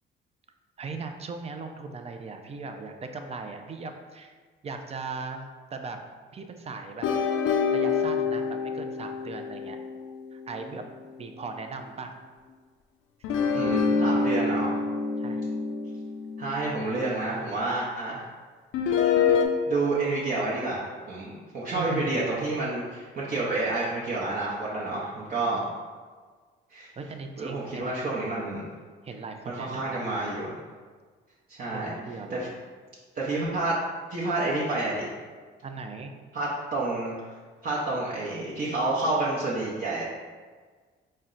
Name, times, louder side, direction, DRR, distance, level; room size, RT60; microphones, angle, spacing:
voice 1, 0.8-4.3 4.6-6.0 6.3-7.1 7.7-9.8 10.3-10.8 11.2-12.1 15.2-15.4 21.7-22.2 27.0-27.9 29.0-30.2 31.7-32.6 35.6-36.1, right 4 dB, 30° right, 5 dB, 0.4 m, -38 dB
sound 1, 7.0-11.6 13.2-17.4 18.7-19.4, left 5 dB, 90° left, 0.4 m, -27 dB
voice 2, 13.5-14.8 16.4-18.2 19.7-25.6 26.7-26.9 27.4-28.6 29.5-30.6 31.5-31.9 32.3-32.5 33.2-33.8 34.1-35.1 36.3-37.1 37.6-40.0, right 2 dB, 50° right, -7 dB, 0.8 m, -29 dB
4.2 x 2.1 x 3.8 m, 1.5 s
cardioid pair, 90°, 20 cm